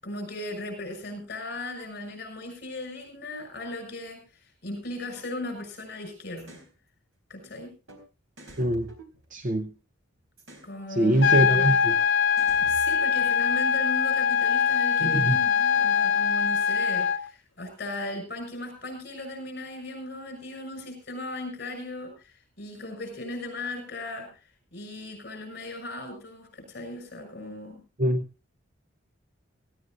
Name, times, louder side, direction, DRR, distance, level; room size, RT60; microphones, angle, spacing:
voice 1, 0.0-6.6 7.3-7.7 10.6-11.8 12.7-24.4 24.7-27.8, left 2 dB, 50° left, 7 dB, 6.7 m, -37 dB
sound 1, 6.4-6.7 7.9-8.0 8.4-9.8 10.4-10.7 11.9-12.0 12.4-13.5, right 1 dB, 90° right, 3.9 m, -47 dB
voice 2, 8.6-8.9 9.3-9.7 10.9-12.0 15.0-15.4 28.0-28.2, right 1 dB, 40° right, 10 dB, 0.6 m, -23 dB
sound 2, 11.2-17.2, left 7 dB, 65° left, 0.9 m, -23 dB
19.0 x 16.0 x 2.5 m, 0.32 s
head